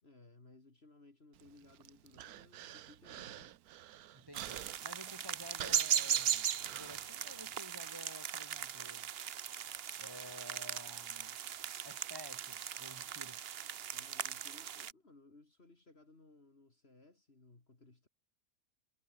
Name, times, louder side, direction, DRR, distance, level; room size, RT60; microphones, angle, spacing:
voice 1, 0.0-3.6 13.9-18.1, left 2 dB, 35° left, 3.1 m, -61 dB
Human voice, 1.3-7.6, right 13 dB, 70° right, 1.1 m, -50 dB
voice 2, 4.1-9.1 10.0-11.4 11.8-13.4, equal, 15° right, 3.8 m, -52 dB
sound 1, 4.3-14.9, right 9 dB, 50° right, 0.7 m, -38 dB
omnidirectional pair, 1.7 m